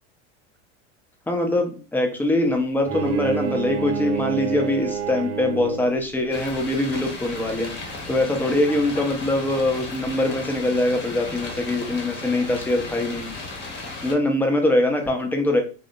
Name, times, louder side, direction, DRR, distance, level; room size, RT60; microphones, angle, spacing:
voice 1, 1.3-7.7 8.1-13.3 14.0-15.6, left 1 dB, 5° left, 3 dB, 0.5 m, -23 dB
Bowed string instrument, 2.8-6.1, right 7 dB, 80° right, 0.6 m, -28 dB
sound 1, 6.3-14.1, left 2 dB, 30° left, 0.8 m, -35 dB
2.7 x 2.0 x 2.5 m, 0.36 s
supercardioid pair, 100°, 34 cm